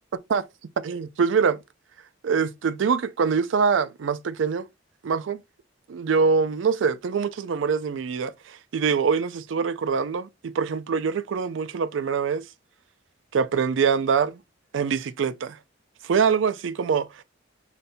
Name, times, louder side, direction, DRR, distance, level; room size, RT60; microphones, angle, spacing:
voice 1, 0.8-1.6 2.2-4.7 5.0-5.4 5.9-12.4 13.3-14.4 14.7-15.6 16.0-17.2, right 6 dB, 80° right, 0.4 m, -24 dB
5.1 x 4.0 x 2.2 m
head